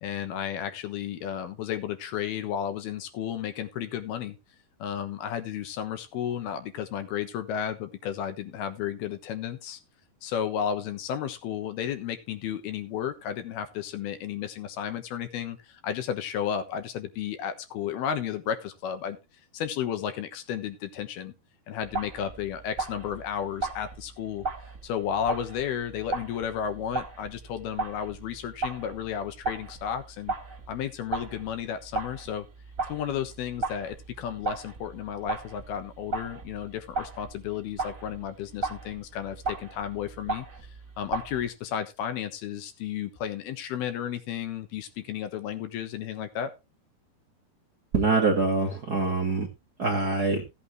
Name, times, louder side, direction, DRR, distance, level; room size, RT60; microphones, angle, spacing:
voice 1, 0.0-4.4 4.8-9.8 10.2-19.2 19.5-21.3 21.7-24.5 24.8-30.3 30.7-32.5 32.9-40.5 41.0-46.5, left 9 dB, 75° left, 8 dB, 3.1 m, -33 dB
sound 1, 21.8-41.5, right 3 dB, 25° right, 2.0 m, -36 dB
voice 2, 47.9-49.5 49.8-50.4, right 3 dB, 85° right, 1 dB, 0.8 m, -24 dB
15.5 x 8.5 x 3.1 m, 0.26 s
omnidirectional pair, 4.7 m